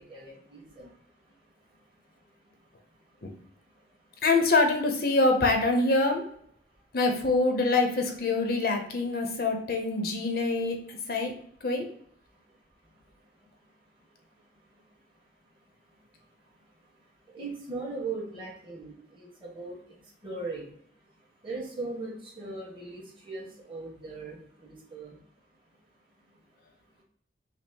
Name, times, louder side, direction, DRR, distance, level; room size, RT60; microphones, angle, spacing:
voice 1, 0.1-0.9 17.3-19.7 20.2-20.7 21.4-25.2, right 3 dB, 30° right, -4 dB, 1.5 m, -39 dB
voice 2, 4.2-6.2 6.9-11.3 11.6-11.9, left 3 dB, 55° left, 3 dB, 0.7 m, -25 dB
5.8 x 2.0 x 4.3 m, 0.64 s
head